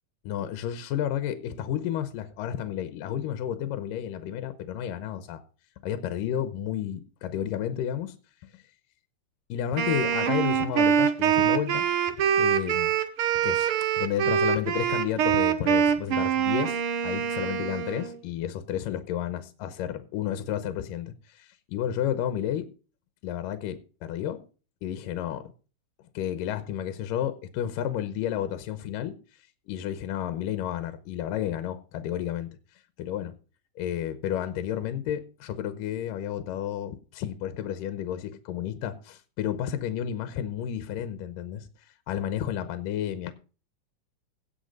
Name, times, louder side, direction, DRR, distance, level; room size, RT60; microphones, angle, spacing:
voice 1, 0.2-5.4 5.8-8.2 8.5-8.6 9.5-11.9 12.4-12.9 13.4-13.7 14.0-22.7 23.2-24.4 24.8-25.5 26.1-29.2 29.7-32.5 33.0-33.3 33.8-41.7 42.1-43.3, left 10 dB, 80° left, 2.4 m, -31 dB
Wind instrument woodwind instrument, 9.8-18.2, right 8 dB, 75° right, 1.2 m, -24 dB
17.0 x 5.7 x 5.3 m
omnidirectional pair, 3.9 m